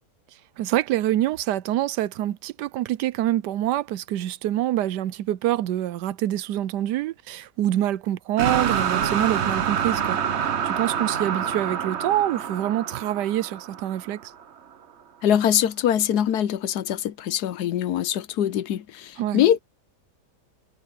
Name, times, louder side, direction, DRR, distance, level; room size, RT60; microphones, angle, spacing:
voice 1, 0.6-14.3 19.2-19.4, right 13 dB, 80° right, 1.2 m, -26 dB
sound 1, 8.4-14.4, right 8 dB, 50° right, 1.0 m, -27 dB
voice 2, 15.2-19.6, left 10 dB, 70° left, 1.2 m, -23 dB
omnidirectional pair, 1.8 m